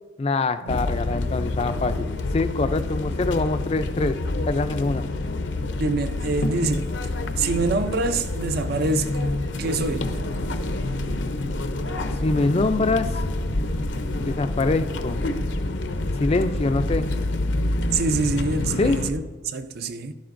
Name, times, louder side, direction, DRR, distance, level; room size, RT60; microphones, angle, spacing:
voice 1, 0.2-4.2 4.5-5.0 12.2-13.3 14.1-15.2 16.1-17.1 18.8-19.0, left 3 dB, 30° left, 0.4 m, -24 dB
sound 1, 0.7-19.1, left 2 dB, 70° left, 0.7 m, -27 dB
voice 2, 5.8-6.9 7.4-9.3 9.6-10.1 17.9-20.1, right 3 dB, 55° right, 0.5 m, -25 dB
11.5 x 11.5 x 2.6 m
head